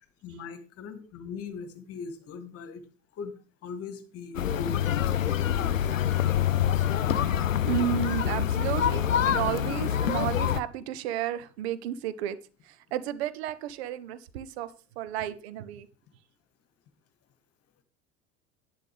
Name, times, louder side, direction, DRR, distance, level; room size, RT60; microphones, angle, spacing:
voice 1, 0.2-2.8 3.2-3.3 3.6-6.0, left 5 dB, 40° left, 10 dB, 1.6 m, -40 dB
sound 1, 4.3-10.6, left 10 dB, 85° left, 0.5 m, -26 dB
voice 2, 7.6-12.4 12.7-14.7 15.0-15.9, right 11 dB, 55° right, 14 dB, 0.9 m, -32 dB
11.0 x 9.7 x 3.4 m, 0.37 s
figure-of-eight pair, 75°, 38 cm